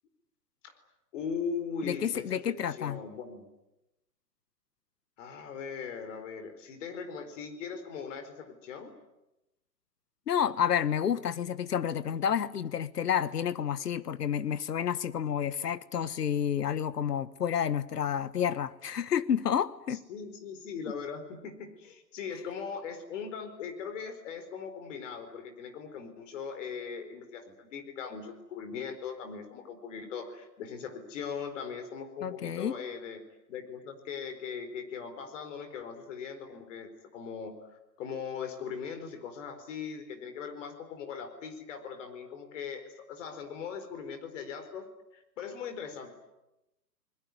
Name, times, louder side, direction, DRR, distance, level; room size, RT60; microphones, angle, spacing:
voice 1, 1.1-3.5 5.2-8.9 19.9-33.2 33.5-44.9 45.1-46.1, left 6 dB, 45° left, 4.5 m, -40 dB
voice 2, 1.8-3.0 10.3-20.0 32.2-32.7, left 8 dB, 65° left, 1.4 m, -30 dB
28.0 x 21.0 x 9.7 m
hypercardioid pair, 130°, 50 cm